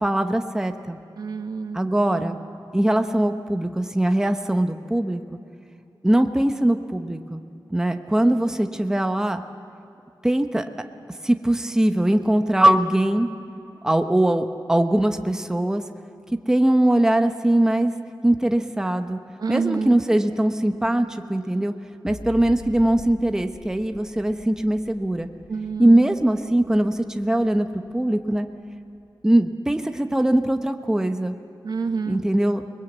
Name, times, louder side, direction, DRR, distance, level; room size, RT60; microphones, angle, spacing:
voice 1, 0.0-1.0 1.7-2.4 2.7-5.2 6.0-7.4 7.7-9.4 10.2-10.7 11.2-13.3 13.8-15.8 16.5-17.9 18.2-19.2 19.5-21.7 22.0-25.3 25.8-27.7 27.9-28.5 29.2-31.4 32.1-32.6, right 1 dB, 5° right, 6 dB, 0.8 m, -21 dB
voice 2, 1.2-1.8 2.1-2.4 19.4-20.0 25.5-26.1 31.6-32.2, right 5 dB, 65° right, 8 dB, 1.1 m, -28 dB
sound 1, 22.1-29.3, left 2 dB, 65° left, 4.4 m, -45 dB
29.0 x 20.5 x 8.0 m, 2.6 s
wide cardioid pair, 155°, 7 cm